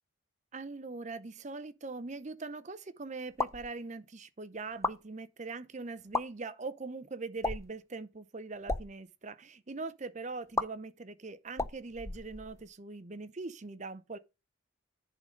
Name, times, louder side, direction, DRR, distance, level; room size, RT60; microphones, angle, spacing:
voice 1, 0.5-14.2, right 3 dB, 35° right, 0.6 m, -42 dB
sound 1, 3.3-3.7 4.7-5.0 6.0-6.2 7.4-7.8 8.5-8.9 10.5-10.7 11.5-12.7, left 3 dB, 15° left, 0.4 m, -34 dB
11.0 x 3.9 x 5.1 m
head